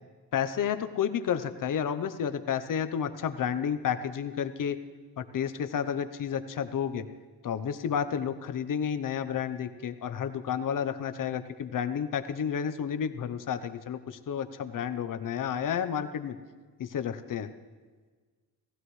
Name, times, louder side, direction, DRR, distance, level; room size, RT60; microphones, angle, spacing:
voice 1, 0.3-4.8 5.2-7.0 7.4-16.4 16.8-17.5, left 8 dB, 55° left, 10 dB, 0.8 m, -31 dB
18.5 x 15.5 x 3.2 m, 1.5 s
cardioid pair, 125°, 39 cm